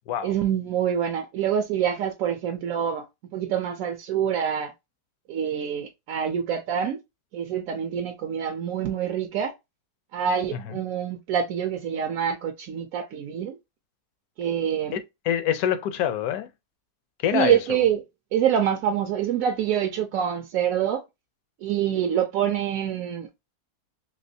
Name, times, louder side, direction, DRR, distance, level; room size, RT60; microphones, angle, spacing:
voice 1, 0.2-3.1 3.3-4.7 5.3-7.0 7.3-9.5 10.1-13.6 14.4-15.0 17.3-18.0 18.3-21.0 21.6-23.3, right 9 dB, 70° right, 0.8 m, -26 dB
voice 2, 14.9-16.5 17.2-17.8, left 10 dB, 70° left, 1.0 m, -26 dB
3.3 x 2.9 x 2.6 m
omnidirectional pair, 1.7 m